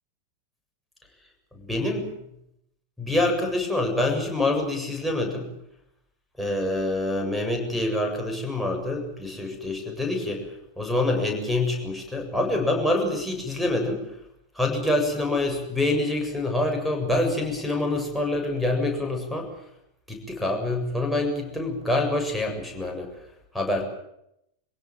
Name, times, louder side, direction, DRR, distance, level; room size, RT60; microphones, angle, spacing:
voice 1, 1.5-2.1 3.0-5.5 6.4-10.4 10.8-14.1 14.6-19.5 20.1-23.1 23.5-23.8, left 2 dB, ahead, 4 dB, 7.5 m, -26 dB
26.0 x 17.0 x 9.1 m, 0.78 s
figure-of-eight pair, 90°, 0 cm